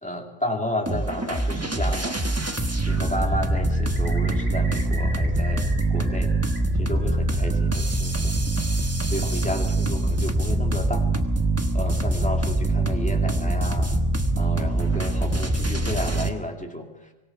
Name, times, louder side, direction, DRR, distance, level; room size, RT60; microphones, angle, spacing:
voice 1, 0.0-2.2 2.9-6.3 6.7-8.4 9.1-11.1 11.7-13.9 14.4-17.1, left 1 dB, 5° left, 2 dB, 2.3 m, -32 dB
sound 1, 0.9-16.3, right 2 dB, 15° right, 1.2 m, -24 dB
Bird, 2.0-2.6 2.9-6.6 6.9-7.7, right 2 dB, 90° right, 3.8 m, -42 dB
25.0 x 18.0 x 5.9 m, 1.1 s
omnidirectional pair, 1.2 m